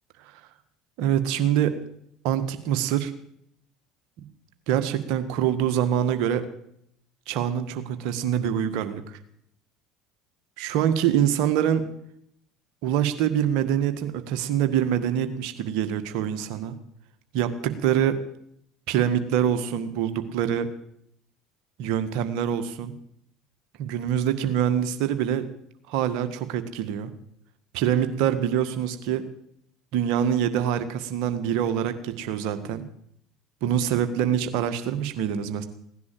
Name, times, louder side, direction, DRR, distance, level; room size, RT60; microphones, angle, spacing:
voice 1, 1.0-1.8 2.2-3.1 4.7-6.5 7.3-9.2 10.6-11.9 12.8-16.7 17.3-18.2 18.9-20.7 21.8-22.9 23.8-25.5 25.9-27.1 27.7-29.2 29.9-32.8 33.6-35.6, right 9 dB, 60° right, 9 dB, 1.7 m, -25 dB
17.0 x 10.5 x 7.7 m, 0.72 s
hypercardioid pair, 65°, 0 cm